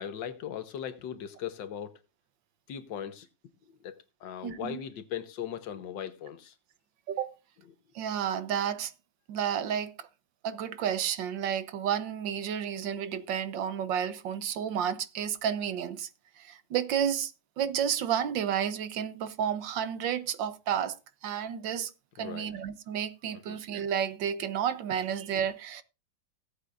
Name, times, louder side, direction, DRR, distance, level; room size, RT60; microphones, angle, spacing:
voice 1, 0.0-2.0 2.7-3.3 3.7-3.9 4.2-6.5 22.2-22.5 23.5-23.6, left 9 dB, 85° left, 1.7 m, -38 dB
voice 2, 4.4-4.8 7.1-7.3 7.9-8.9 9.3-10.1 10.4-16.1 16.4-21.0 21.2-21.9 22.2-25.8, right 9 dB, 90° right, 1.7 m, -31 dB
18.0 x 8.2 x 2.5 m
omnidirectional pair, 2.0 m